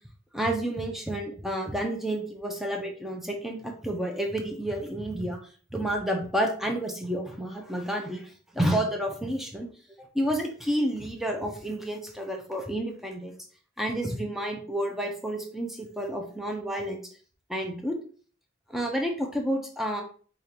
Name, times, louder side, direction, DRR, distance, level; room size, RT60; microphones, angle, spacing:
voice 1, 0.3-5.4 5.7-9.7 10.0-13.4 13.8-17.1 17.5-18.0 18.7-20.0, right 1 dB, ahead, 2 dB, 0.6 m, -30 dB
4.9 x 2.5 x 2.8 m, 0.43 s
head